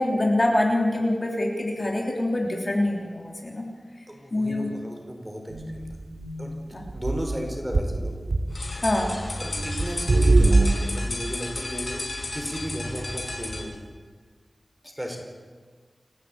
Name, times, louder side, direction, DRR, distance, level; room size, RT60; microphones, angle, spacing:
voice 1, 0.0-3.7 4.3-4.7 6.7-6.8 8.8-9.1, left 1 dB, 40° left, 0 dB, 3.3 m, -25 dB
voice 2, 4.1-5.9 6.4-8.1 9.4-12.0 12.3-13.7 15.0-15.2, equal, 10° right, 2 dB, 4.9 m, -35 dB
sound 1, 5.5-6.5 6.9-8.5 8.9-9.2 9.5-10.7, right 2 dB, 65° right, 1.7 m, -23 dB
sound 2, 8.5-13.7, left 2 dB, 60° left, 5.2 m, -33 dB
29.5 x 13.0 x 8.7 m, 1.5 s
wide cardioid pair, 75°, 0 cm